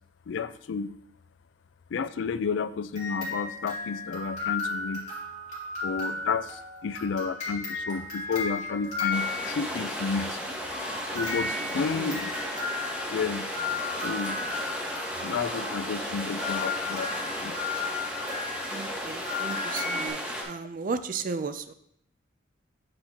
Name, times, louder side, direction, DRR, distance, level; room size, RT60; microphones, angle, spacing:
voice 1, 0.3-1.0 1.9-5.1 5.8-10.4 11.1-12.4 13.1-13.5 13.9-14.4 15.2-17.1 17.4-17.6, left 5 dB, 75° left, 14 dB, 0.4 m, -31 dB
sound 1, 3.0-9.9 10.7-20.1, left 4 dB, 35° left, 2.2 m, -35 dB
sound 2, 9.1-20.4, equal, 5° right, 1.4 m, -34 dB
voice 2, 18.7-20.2 20.4-21.7, right 4 dB, 45° right, 11 dB, 0.4 m, -34 dB
7.8 x 5.9 x 2.9 m, 0.71 s
head